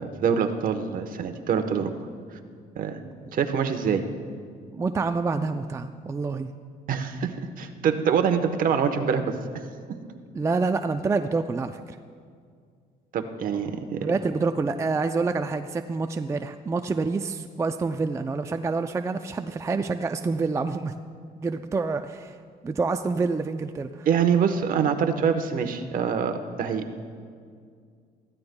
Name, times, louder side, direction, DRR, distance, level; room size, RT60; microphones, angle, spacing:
voice 1, 0.0-1.9 2.8-3.0 3.3-4.0 6.9-7.3 7.6-9.2 13.1-14.1 24.1-26.8, right 7 dB, 55° right, 7 dB, 1.0 m, -25 dB
voice 2, 4.7-6.5 10.3-12.0 14.0-20.9 21.4-22.4 22.6-24.1, right 4 dB, 15° right, 7 dB, 0.4 m, -27 dB
19.0 x 14.5 x 2.2 m, 2.1 s
cardioid pair, 110°, 17 cm